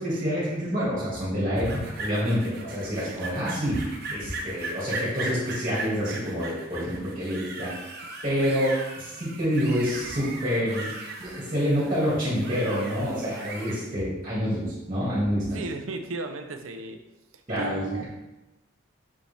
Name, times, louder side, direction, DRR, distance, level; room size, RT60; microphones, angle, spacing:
voice 1, 0.0-1.7 2.0-7.7 8.2-10.9 11.2-15.6 17.5-18.0, equal, 30° right, -8 dB, 2.0 m, -27 dB
sound 1, 1.6-13.8, right 2 dB, 50° right, 0.8 m, -38 dB
voice 2, 15.5-17.0 17.6-18.0, right 3 dB, 85° right, 6 dB, 0.7 m, -35 dB
5.9 x 5.1 x 3.4 m, 1.0 s
head